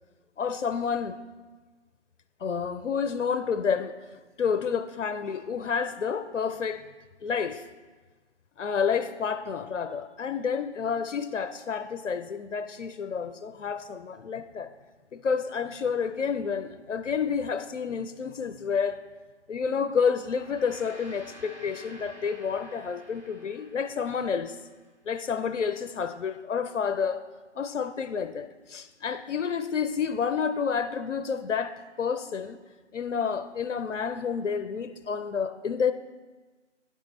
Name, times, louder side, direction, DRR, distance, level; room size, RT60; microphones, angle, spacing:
voice 1, 0.4-1.2 2.4-3.9 4.4-6.8 7.2-7.6 8.6-14.7 15.1-19.0 19.5-24.6 25.1-27.2 27.6-32.6 32.9-35.9, left 6 dB, 85° left, 10 dB, 0.5 m, -29 dB
Gong, 20.1-24.8, equal, 25° right, 1.1 m, -50 dB
10.0 x 3.6 x 4.1 m, 1.3 s
figure-of-eight pair, 165°, 36 cm